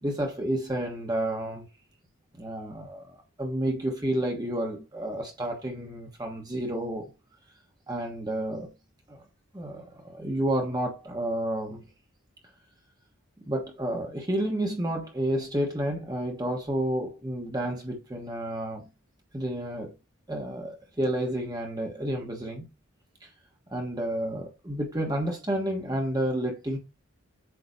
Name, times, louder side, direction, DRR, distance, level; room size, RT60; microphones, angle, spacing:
voice 1, 0.0-1.6 2.4-7.1 7.9-8.7 9.1-9.2 9.5-11.9 13.4-18.9 19.3-19.9 20.3-22.7 23.2-23.3 23.7-26.8, right 1 dB, 20° right, 1.2 m, -30 dB
8.1 x 3.0 x 5.0 m
head